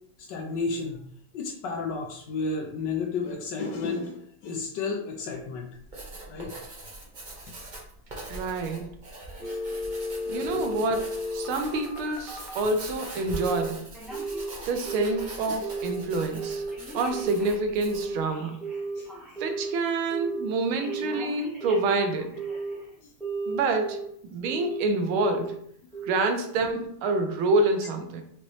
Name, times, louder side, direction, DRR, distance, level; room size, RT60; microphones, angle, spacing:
voice 1, 0.2-1.0 1.3-5.7 6.3-6.5 7.4-7.5 9.3-9.8 14.6-14.7 19.0-19.1, left 4 dB, 75° left, 2 dB, 1.1 m, -32 dB
Writing, 5.8-18.2, right 2 dB, 40° right, 0.6 m, -42 dB
voice 2, 8.3-8.9 10.3-13.8 14.7-16.6 16.9-18.6 19.4-22.4 23.5-25.6 26.0-28.2, right 2 dB, 80° right, 6 dB, 1.5 m, -27 dB
Telephone, 9.4-12.7 13.3-13.7 13.9-15.3 15.6-16.0 16.4-19.7 20.1-20.5 20.8-22.8 23.2-24.1 24.4-24.8 25.2-25.6 25.9-26.3 26.7-26.8, right 2 dB, ahead, 0.6 m, -34 dB
5.3 x 2.9 x 3.1 m, 0.67 s
omnidirectional pair, 2.3 m